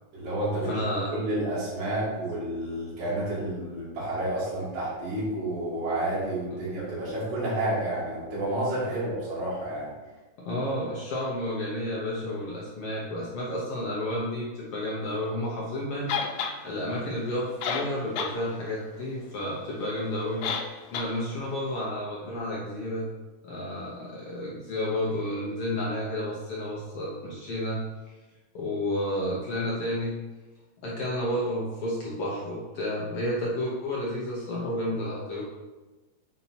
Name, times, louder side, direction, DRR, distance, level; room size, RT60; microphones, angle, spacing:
voice 1, 0.1-0.7 1.1-9.9, right 1 dB, 70° right, -10 dB, 4.1 m, -30 dB
voice 2, 0.6-1.1 10.4-16.1 16.6-20.5 20.9-23.1 23.4-27.8 28.5-30.1 30.8-35.4, left 1 dB, 65° left, -5 dB, 1.5 m, -31 dB
sound 1, 16.1-16.6 17.3-17.4 17.6-18.4 18.7-18.8 20.4-20.7 20.9-21.1, left 6 dB, 90° left, 2.5 m, -29 dB
7.2 x 4.4 x 4.3 m, 1.2 s
omnidirectional pair, 4.0 m